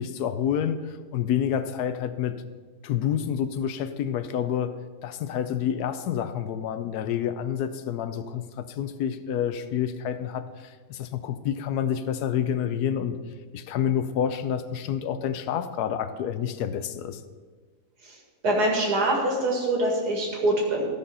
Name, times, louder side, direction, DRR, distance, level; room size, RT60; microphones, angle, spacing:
voice 1, 0.0-2.4 2.8-4.7 5.0-13.2 13.5-17.2, left 9 dB, 80° left, 11 dB, 1.2 m, -28 dB
voice 2, 18.4-20.9, right 1 dB, 90° right, -1 dB, 2.6 m, -24 dB
14.5 x 5.1 x 5.5 m, 1.5 s
omnidirectional pair, 1.7 m